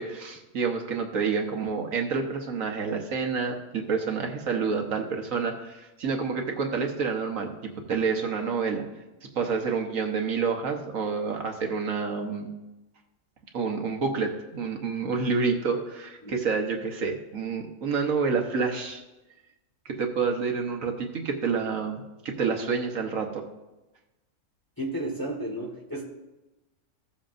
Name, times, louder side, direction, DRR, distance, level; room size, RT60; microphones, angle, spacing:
voice 1, 0.0-8.8 9.3-12.5 13.5-19.0 19.8-23.4, right 5 dB, 65° right, 3 dB, 1.4 m, -28 dB
voice 2, 24.8-26.0, right 1 dB, 15° left, -1 dB, 1.3 m, -32 dB
15.5 x 7.3 x 2.6 m, 1.0 s
omnidirectional pair, 1.5 m